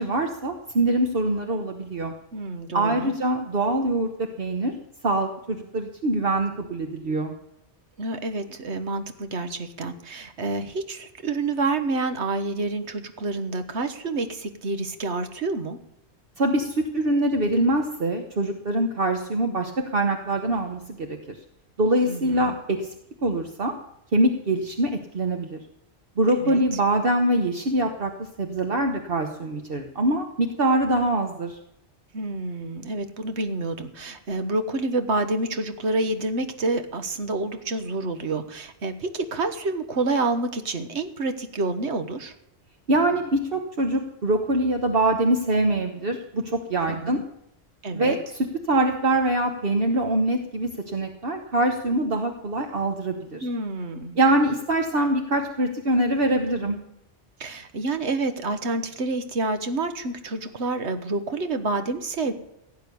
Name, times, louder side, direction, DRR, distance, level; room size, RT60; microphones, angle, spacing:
voice 1, 0.0-2.1 2.7-4.7 5.0-7.3 16.4-21.4 21.8-22.8 23.2-23.7 24.1-25.6 26.2-28.1 28.4-31.6 42.9-47.2 47.9-53.5 54.2-56.8, right 1 dB, 60° right, 5 dB, 1.4 m, -24 dB
voice 2, 2.3-3.1 8.0-15.8 22.0-22.6 26.3-26.6 32.1-42.3 46.9-47.2 47.8-48.2 53.4-54.2 57.4-62.3, right 2 dB, 85° right, 9 dB, 1.6 m, -28 dB
16.5 x 8.4 x 6.9 m, 0.82 s
omnidirectional pair, 1.1 m